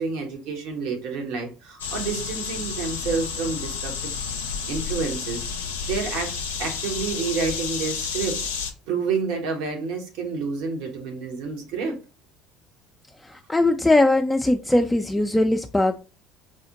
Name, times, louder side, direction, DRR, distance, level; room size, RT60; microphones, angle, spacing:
voice 1, 0.0-4.1 4.7-5.4 5.9-8.4 8.9-12.0, right 5 dB, 70° right, 1.0 m, -29 dB
sound 1, 1.8-8.7, left 5 dB, 85° left, 0.4 m, -31 dB
voice 2, 13.5-15.9, left 2 dB, 10° left, 0.3 m, -20 dB
4.9 x 2.1 x 2.8 m
hypercardioid pair, 60°, 0 cm